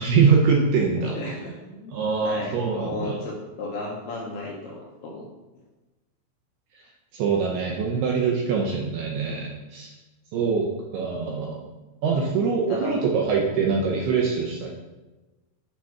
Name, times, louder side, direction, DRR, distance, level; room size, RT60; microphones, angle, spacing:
voice 1, 0.0-1.2 1.9-3.2 7.1-9.9 10.3-10.7 10.9-11.6 12.0-14.7, right 5 dB, 80° right, -1 dB, 2.4 m, -23 dB
voice 2, 0.9-5.3 12.5-13.0 13.4-13.6, left 2 dB, 75° left, -2 dB, 2.4 m, -35 dB
8.7 x 3.8 x 5.7 m, 1.1 s
omnidirectional pair, 5.4 m